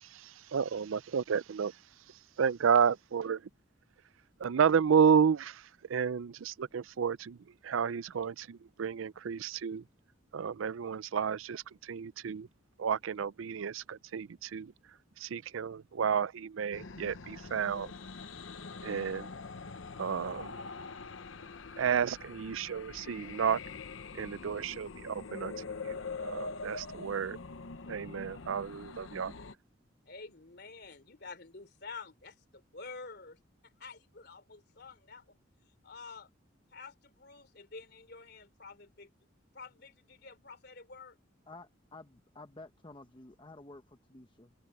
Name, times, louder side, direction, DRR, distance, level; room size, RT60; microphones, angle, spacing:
voice 1, 0.0-1.7 2.4-3.4 4.4-5.6 5.9-7.4 7.6-9.8 10.3-12.5 12.8-14.7 15.2-17.9 18.8-19.3 20.0-20.6 21.8-23.6 24.1-25.5 25.8-27.4 27.9-29.3, right 7 dB, 85° right, 0.4 m, -31 dB
sound 1, 16.7-29.5, left 4 dB, 80° left, 0.8 m, -44 dB
voice 2, 30.1-35.4 35.8-36.3 36.7-39.1 39.5-41.2, left 4 dB, 55° left, 3.3 m, -49 dB
voice 3, 41.5-44.5, left 2 dB, 25° left, 0.8 m, -52 dB
head